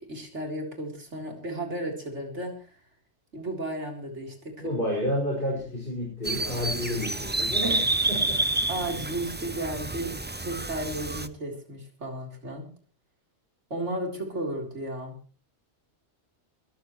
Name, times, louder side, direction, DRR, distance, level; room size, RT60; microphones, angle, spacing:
voice 1, 0.1-2.8 3.3-4.7 7.6-7.9 8.7-12.7 13.7-15.2, right 1 dB, 75° right, 1 dB, 4.0 m, -34 dB
voice 2, 4.6-7.8 8.1-8.4, left 1 dB, 45° left, -2 dB, 6.1 m, -30 dB
sound 1, 6.2-11.3, right 2 dB, 15° right, 0.5 m, -29 dB
24.0 x 13.5 x 3.2 m, 0.38 s
omnidirectional pair, 1.2 m